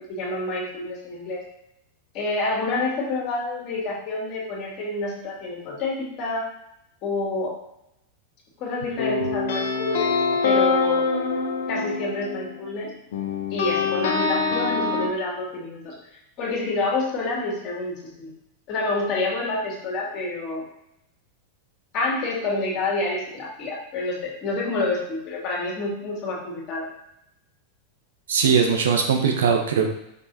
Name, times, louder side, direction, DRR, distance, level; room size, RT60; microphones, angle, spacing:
voice 1, 0.1-1.4 2.1-6.4 7.0-7.5 8.6-10.2 10.4-11.0 11.7-12.9 13.5-15.9 16.4-18.3 18.7-20.6 21.9-26.9, left 2 dB, 40° left, -3 dB, 2.3 m, -28 dB
sound 1, 9.0-12.7 13.1-15.1, left 4 dB, 55° left, 1.0 m, -24 dB
voice 2, 28.3-29.9, right 6 dB, 60° right, 2 dB, 1.0 m, -20 dB
5.5 x 4.7 x 4.2 m, 0.82 s
figure-of-eight pair, 90°, 0 cm